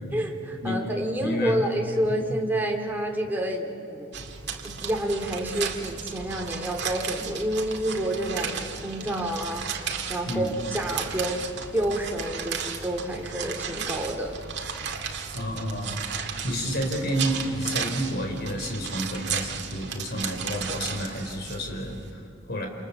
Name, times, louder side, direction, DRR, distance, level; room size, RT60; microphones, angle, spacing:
voice 1, 0.1-4.2 4.6-14.3 14.7-14.9, right 1 dB, 10° right, 0 dB, 3.3 m, -29 dB
voice 2, 1.2-1.6 2.1-2.2 10.3-10.5 15.3-16.0 16.4-22.7, equal, 55° left, 3 dB, 5.0 m, -30 dB
sound 1, 4.1-22.1, right 6 dB, 60° right, 2.4 m, -34 dB
28.5 x 28.0 x 7.3 m, 2.6 s
head